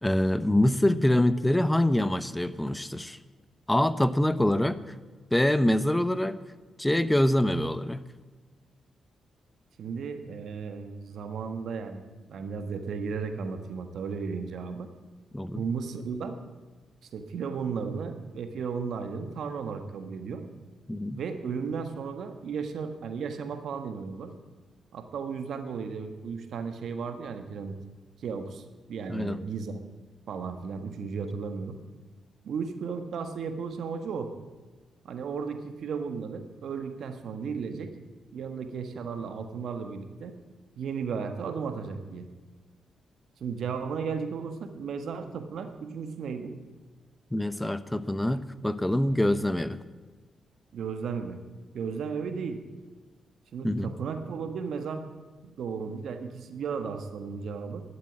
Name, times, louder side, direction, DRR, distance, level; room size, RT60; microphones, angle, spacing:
voice 1, 0.0-3.2 3.7-4.8 5.3-6.4 6.8-8.1 15.3-15.6 20.9-21.2 29.1-29.4 47.3-49.8 53.6-53.9, left 1 dB, 10° left, 14 dB, 0.9 m, -25 dB
voice 2, 9.8-14.9 15.5-16.4 17.1-20.4 21.1-24.3 24.9-27.8 28.2-29.8 30.3-31.8 32.4-34.3 35.0-37.9 38.3-40.4 40.7-42.3 43.4-46.5 50.7-51.4 51.7-52.6 53.5-55.0 55.4-57.8, right 5 dB, 70° right, 7 dB, 1.5 m, -35 dB
12.0 x 8.7 x 9.9 m, 1.3 s
supercardioid pair, 50°, 0 cm